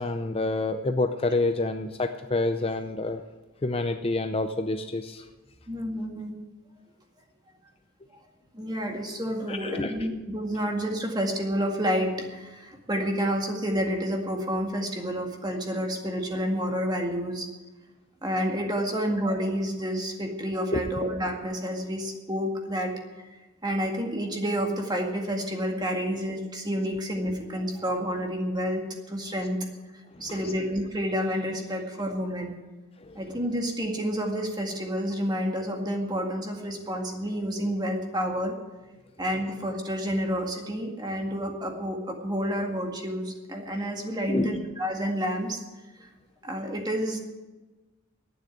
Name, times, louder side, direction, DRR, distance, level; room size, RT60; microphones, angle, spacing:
voice 1, 0.0-3.2 3.6-5.2 9.5-9.9 18.9-19.0 20.7-20.8 30.3-30.5 33.0-33.2 44.3-44.5, left 2 dB, 25° left, 7 dB, 0.5 m, -28 dB
voice 2, 5.7-6.3 8.5-17.5 18.2-22.9 23.6-29.6 30.2-32.6 33.2-38.5 39.2-45.6 46.0-46.1 46.4-47.2, equal, 20° right, 2 dB, 1.9 m, -29 dB
11.5 x 9.2 x 9.5 m, 1.2 s
head